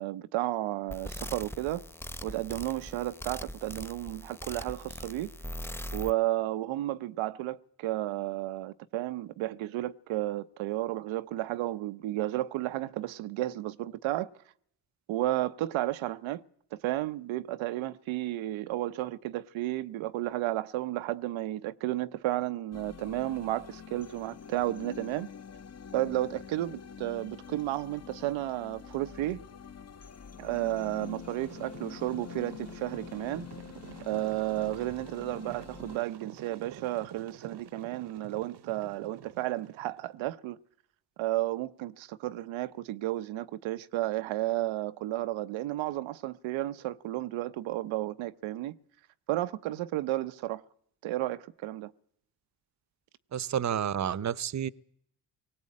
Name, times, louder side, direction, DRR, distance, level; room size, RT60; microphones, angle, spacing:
voice 1, 0.0-1.8 2.2-5.3 5.9-14.3 15.1-16.4 16.7-25.3 25.9-29.4 30.4-33.5 34.0-40.6 41.2-48.8 49.3-50.6 51.0-51.9, right 15 dB, 85° right, 0.9 m, -32 dB
sound 1, 0.9-6.1, left 1 dB, 5° left, 1.0 m, -41 dB
sound 2, 22.7-36.0, left 7 dB, 35° left, 1.0 m, -46 dB
sound 3, 31.0-40.1, right 10 dB, 60° right, 1.0 m, -48 dB
voice 2, 53.3-54.7, right 9 dB, 35° right, 0.8 m, -30 dB
19.5 x 17.0 x 8.6 m
supercardioid pair, 65°, 46 cm